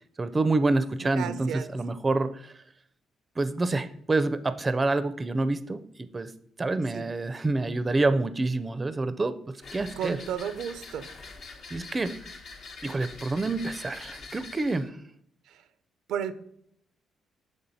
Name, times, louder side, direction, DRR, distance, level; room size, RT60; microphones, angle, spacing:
voice 1, 0.2-2.5 3.4-6.3 6.6-9.3 9.7-10.2 11.7-12.1 12.8-14.9, right 2 dB, 25° right, 12 dB, 0.4 m, -27 dB
voice 2, 1.1-1.7 6.9-7.0 10.0-11.1 15.5-15.6 16.1-16.4, right 8 dB, 85° right, 11 dB, 0.5 m, -33 dB
sound 1, 9.6-14.9, left 4 dB, 60° left, 0.9 m, -44 dB
7.0 x 3.5 x 4.0 m, 0.69 s
cardioid pair, 90°, 0 cm